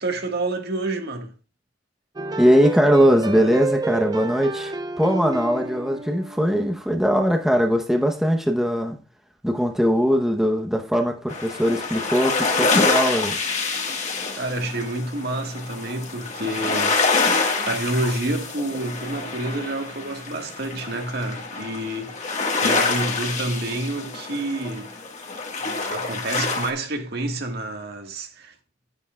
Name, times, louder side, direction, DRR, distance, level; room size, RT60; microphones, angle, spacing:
voice 1, 0.0-1.3 14.3-17.0 17.6-24.9 25.9-28.5, right 2 dB, 60° right, 1.6 m, -28 dB
sound 1, 2.2-6.8, right 2 dB, 20° right, 0.4 m, -30 dB
voice 2, 2.4-9.0 9.4-13.4, equal, ahead, 0.9 m, -20 dB
sound 2, 11.3-26.7, left 4 dB, 40° left, 1.6 m, -26 dB
9.9 x 9.7 x 2.3 m
head